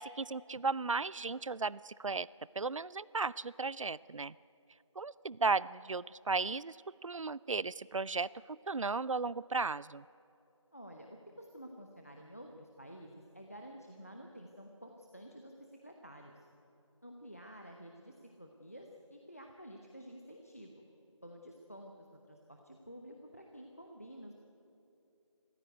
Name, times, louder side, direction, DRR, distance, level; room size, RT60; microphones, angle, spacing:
voice 1, 0.0-2.3 2.6-4.3 5.0-6.8 7.0-10.0, right 4 dB, 75° right, 21 dB, 0.4 m, -35 dB
voice 2, 10.7-11.1 11.4-16.5 17.0-20.8 21.2-24.3, equal, 30° left, 3 dB, 1.1 m, -51 dB
22.0 x 15.0 x 9.2 m, 2.8 s
figure-of-eight pair, 175°, 16 cm